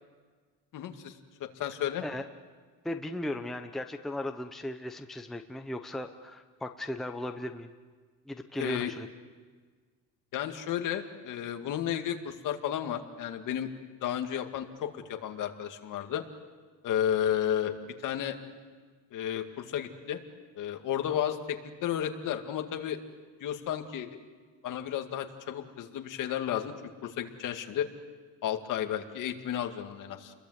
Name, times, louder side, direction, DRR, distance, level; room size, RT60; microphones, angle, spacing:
voice 1, 0.7-1.1 1.4-2.0 8.5-8.9 10.3-13.7 14.0-16.2 16.8-17.7 18.0-18.4 19.1-20.2 20.6-23.0 23.4-24.1 24.6-26.7 27.0-27.9 28.4-30.3, left 10 dB, 60° left, 5 dB, 2.2 m, -32 dB
voice 2, 2.8-7.7 8.3-9.1, left 1 dB, ahead, 5 dB, 0.7 m, -37 dB
30.0 x 22.0 x 8.1 m, 1.5 s
cardioid pair, 175°, 35 cm